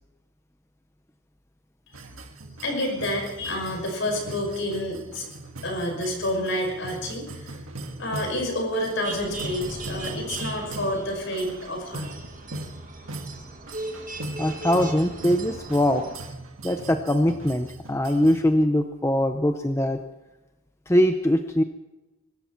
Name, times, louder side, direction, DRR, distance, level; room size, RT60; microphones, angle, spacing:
sound 1, 1.9-18.4, right 2 dB, 75° right, 1.8 m, -39 dB
voice 1, 2.6-5.3 5.6-7.6 8.0-12.1, left 1 dB, 60° left, 2 dB, 5.8 m, -29 dB
sound 2, 9.0-16.2, right 3 dB, 40° right, 2.0 m, -39 dB
voice 2, 14.4-16.0 16.6-20.0 20.9-21.6, left 1 dB, 10° left, 7 dB, 0.6 m, -22 dB
24.0 x 13.0 x 4.5 m, 1.1 s
head